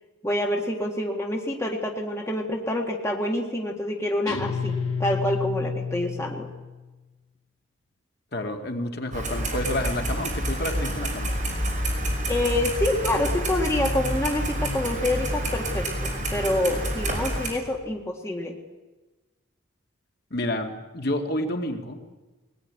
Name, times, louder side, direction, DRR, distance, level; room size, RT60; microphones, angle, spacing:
voice 1, 0.2-6.5 12.3-18.6, left 1 dB, 15° left, 1 dB, 1.7 m, -27 dB
Guitar, 4.3-6.9, left 5 dB, 75° left, 2.1 m, -30 dB
voice 2, 8.3-11.3 20.3-22.0, left 1 dB, 50° left, 4 dB, 2.2 m, -29 dB
Clock, 9.1-17.5, right 1 dB, 35° right, 5.7 m, -28 dB
21.5 x 19.0 x 9.7 m, 1.2 s
head